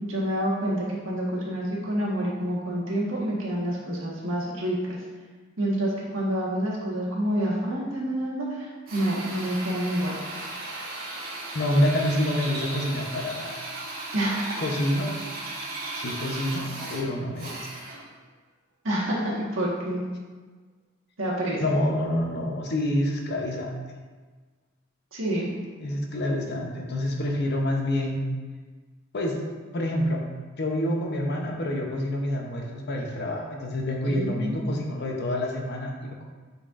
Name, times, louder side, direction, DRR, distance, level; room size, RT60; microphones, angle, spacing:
voice 1, 0.0-5.0 5.6-10.2 14.1-14.6 18.8-20.0 21.2-21.6 25.1-25.5 34.0-34.6, right 1 dB, 75° right, -5 dB, 1.6 m, -28 dB
Drill, 8.9-18.1, right 2 dB, 50° right, 1.6 m, -36 dB
voice 2, 11.5-13.6 14.6-15.1 16.0-17.8 21.6-23.7 25.8-28.3 29.1-29.4 29.7-30.3 30.6-36.3, left 1 dB, 55° left, 1 dB, 0.9 m, -27 dB
8.9 x 4.5 x 2.6 m, 1.4 s
head